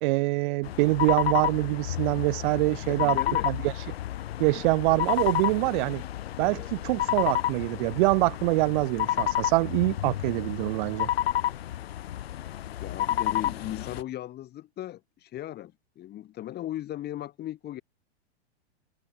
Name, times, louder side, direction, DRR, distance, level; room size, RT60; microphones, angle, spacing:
voice 1, 0.0-3.2 3.4-3.7 4.4-6.0 6.4-11.1, right 24 dB, 50° right, 2.6 m, -25 dB
sound 1, 0.6-14.0, left 12 dB, 65° left, 4.1 m, -30 dB
voice 2, 2.9-3.5 12.8-17.8, left 13 dB, 30° left, 6.2 m, -37 dB
hypercardioid pair, 110°, 33 cm